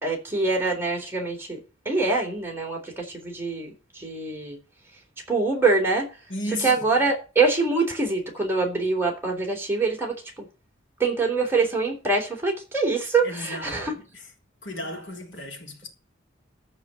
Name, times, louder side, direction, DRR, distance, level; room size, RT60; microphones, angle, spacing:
voice 1, 0.0-1.6 1.9-4.6 5.3-6.1 6.6-10.5 11.0-14.0, right 3 dB, 10° right, 3.9 m, -24 dB
voice 2, 6.3-6.8 13.2-14.3 14.6-15.9, left 1 dB, 65° left, 3.3 m, -34 dB
14.0 x 4.9 x 8.4 m
head